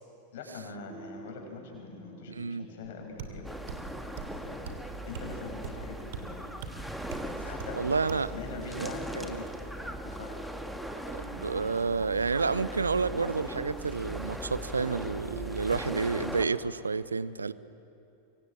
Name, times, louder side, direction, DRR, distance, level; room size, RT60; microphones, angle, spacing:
voice 1, 0.3-3.5 4.4-4.8 5.0-6.5 7.4-7.8 8.3-9.5 10.0-10.4, left 4 dB, 55° left, 2 dB, 6.1 m, -43 dB
sound 1, 0.9-16.2, right 2 dB, 20° right, 2.6 m, -50 dB
voice 2, 2.3-2.7 7.7-8.3 8.7-9.4 11.1-17.5, right 4 dB, 75° right, 18 dB, 0.7 m, -30 dB
sound 2, 2.8-2.9 3.2-3.4 3.7-3.8 4.2-4.4 4.7-4.8 5.1-5.3 5.6-5.8 6.1-6.2 6.6-6.7 7.1-7.3 7.6-7.8 8.1-8.3, right 7 dB, 50° right, 2.9 m, -40 dB
sound 3, 3.4-16.5, right 1 dB, ahead, 1.9 m, -39 dB
25.0 x 24.0 x 8.6 m, 2.8 s
figure-of-eight pair, 90°, 0 cm